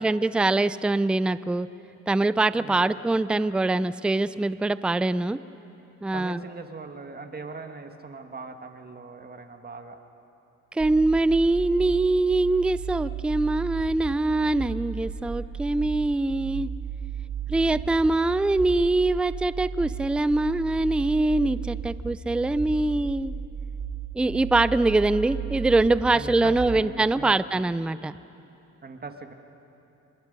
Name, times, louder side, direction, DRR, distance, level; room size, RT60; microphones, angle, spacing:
voice 1, 0.0-1.7 2.1-5.4 6.0-6.4 10.7-16.7 17.5-23.3 24.1-28.2, right 2 dB, 5° right, 16 dB, 0.4 m, -23 dB
voice 2, 2.6-2.9 6.1-10.0 26.1-27.7 28.8-29.3, right 4 dB, 30° right, 6 dB, 1.7 m, -40 dB
sound 1, 10.8-26.8, right 7 dB, 75° right, 2.9 m, -34 dB
26.5 x 21.5 x 5.4 m, 3.0 s
cardioid pair, 90°, 30 cm